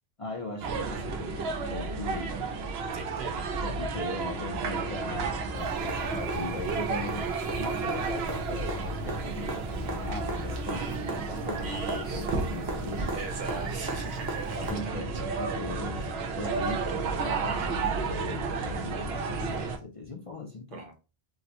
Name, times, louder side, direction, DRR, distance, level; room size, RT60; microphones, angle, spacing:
voice 1, 0.2-2.4 3.2-7.3 7.6-11.0 11.3-13.2 14.6-16.1 16.4-20.8, left 2 dB, 45° left, 0.5 m, -39 dB
sound 1, 0.6-19.8, right 4 dB, 85° right, 0.8 m, -32 dB
voice 2, 2.9-3.5 10.7-12.3 13.1-15.0 15.9-16.2 16.6-16.9 20.7-20.9, right 3 dB, 60° right, 0.9 m, -40 dB
sound 2, 5.6-14.7 16.7-16.8, right 1 dB, 25° right, 0.6 m, -39 dB
3.8 x 2.1 x 2.8 m
omnidirectional pair, 1.0 m